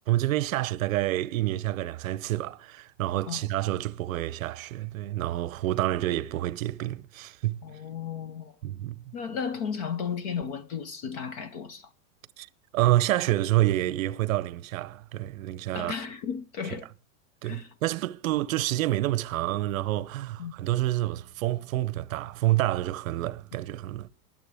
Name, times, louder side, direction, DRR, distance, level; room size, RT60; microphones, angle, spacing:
voice 1, 0.1-7.6 8.6-9.1 12.4-12.5 12.7-15.9 17.4-24.1, right 15 dB, 65° right, 0.8 m, -28 dB
voice 2, 7.6-8.5 9.1-11.9 15.7-16.9 17.4-17.7 20.4-20.5, left 6 dB, 30° left, 0.4 m, -34 dB
22.5 x 7.5 x 3.5 m
supercardioid pair, 165°, 43 cm